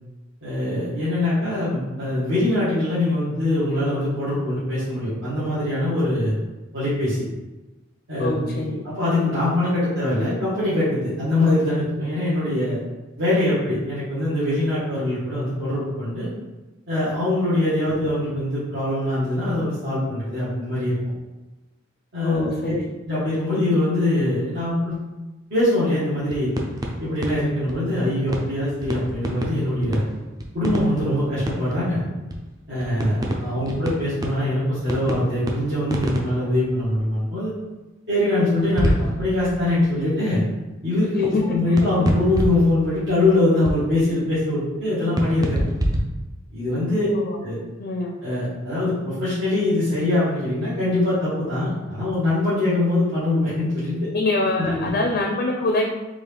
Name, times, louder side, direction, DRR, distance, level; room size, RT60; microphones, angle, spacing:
voice 1, 0.4-6.3 6.7-7.2 8.1-8.6 8.8-12.8 13.2-16.3 16.9-20.9 22.1-22.7 23.1-25.0 25.5-26.5 27.0-30.0 30.5-32.0 32.7-37.5 38.1-40.4 40.8-45.6 46.5-47.1 47.4-47.6 48.2-54.0 54.6-54.9, left 1 dB, 60° right, -12 dB, 1.3 m, -23 dB
voice 2, 8.2-8.8 22.2-22.8 33.5-33.6 41.3-41.4 47.0-47.4 47.8-48.2 54.1-55.8, left 2 dB, 55° left, 1 dB, 0.4 m, -24 dB
sound 1, 26.3-27.9 28.3-28.6 28.8-32.0 32.3-32.4 32.8-37.0 38.6-40.1 41.8-44.4 45.2-46.0, equal, 20° right, 0.4 m, -27 dB
3.8 x 2.4 x 3.3 m, 1.1 s
head